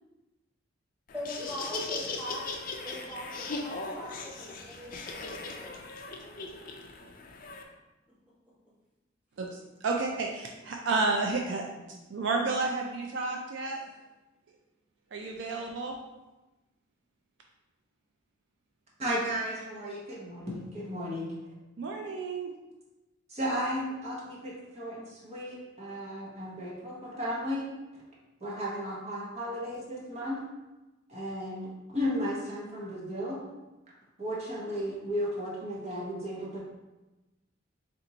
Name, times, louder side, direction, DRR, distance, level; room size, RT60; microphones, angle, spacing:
Laughter, 1.1-7.6, left 3 dB, 45° left, 0.4 m, -38 dB
voice 1, 1.1-2.5 2.8-5.8 6.1-6.7, left 1 dB, 5° right, -9 dB, 1.4 m, -42 dB
voice 2, 9.4-13.8 15.1-16.0 21.8-22.5, right 3 dB, 65° right, 1 dB, 0.4 m, -31 dB
voice 3, 19.0-21.3 23.3-27.7 28.4-30.4 31.1-33.4 34.2-36.6, equal, 35° right, -5 dB, 0.9 m, -34 dB
3.4 x 2.9 x 3.9 m, 1.1 s
head